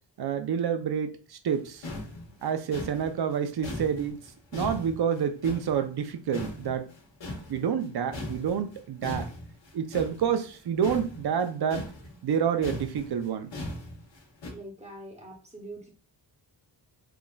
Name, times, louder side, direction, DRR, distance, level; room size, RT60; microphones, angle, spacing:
voice 1, 0.2-1.9 2.4-4.2 4.5-6.9 7.5-9.3 9.7-11.9 12.2-13.5, right 7 dB, 60° right, 0.5 m, -28 dB
sound 1, 1.5-1.6 1.8-6.1 6.3-14.5, left 1 dB, 75° left, 1.1 m, -39 dB
voice 2, 14.5-15.9, right 1 dB, 15° right, 0.8 m, -43 dB
5.8 x 2.5 x 2.2 m
wide cardioid pair, 175°, 44 cm